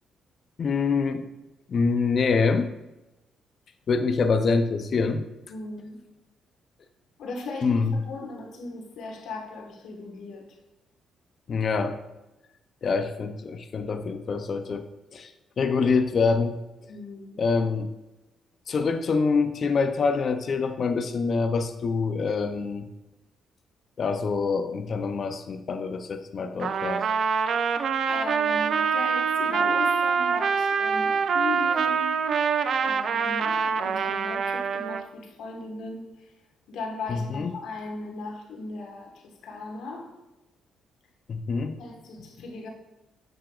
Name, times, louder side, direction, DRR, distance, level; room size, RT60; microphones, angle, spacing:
voice 1, 0.6-1.3 1.7-2.7 3.9-5.2 7.6-7.9 11.5-12.0 12.8-14.9 15.1-16.6 17.4-17.9 18.7-22.9 24.0-27.0 37.1-37.5 41.3-41.8, left 4 dB, 50° left, 8 dB, 0.5 m, -25 dB
voice 2, 5.5-6.0 7.2-10.5 16.9-17.4 28.1-32.5 32.8-36.3 36.7-40.2 41.8-42.7, left 3 dB, 75° left, 1 dB, 1.3 m, -37 dB
Trumpet, 26.6-35.0, right 6 dB, 60° right, 0.4 m, -25 dB
7.3 x 6.8 x 2.4 m, 0.99 s
cardioid pair, 90°, 0 cm